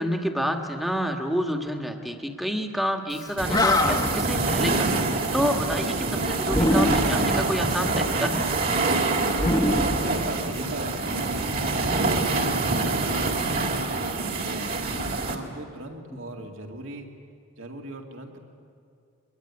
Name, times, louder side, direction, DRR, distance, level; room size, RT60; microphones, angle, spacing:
voice 1, 0.0-4.9 5.3-8.5, equal, ahead, 3 dB, 1.5 m, -28 dB
Animal, 3.2-3.3 3.5-4.3 6.5-7.3 9.3-10.7, left 1 dB, 20° left, 1.1 m, -23 dB
sound 1, 3.4-15.4, right 3 dB, 40° right, 2.4 m, -26 dB
voice 2, 9.5-11.0 11.7-12.9 13.9-14.7 15.0-17.1 17.6-18.4, right 2 dB, 65° right, 2 dB, 2.6 m, -38 dB
23.0 x 21.5 x 9.8 m, 2.3 s
head